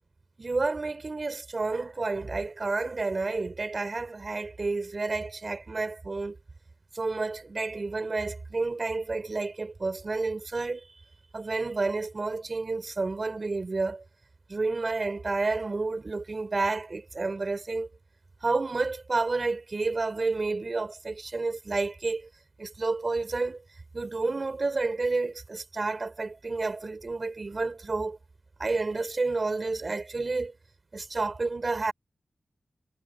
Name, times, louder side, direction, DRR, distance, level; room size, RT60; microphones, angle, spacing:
voice 1, 0.4-6.4 6.9-10.8 11.3-14.0 14.5-17.9 18.4-22.3 22.6-23.6 23.9-28.2 28.6-30.5 30.9-31.9, right 3 dB, 45° right, 4.2 m, -30 dB
cardioid pair, 55°, 0 cm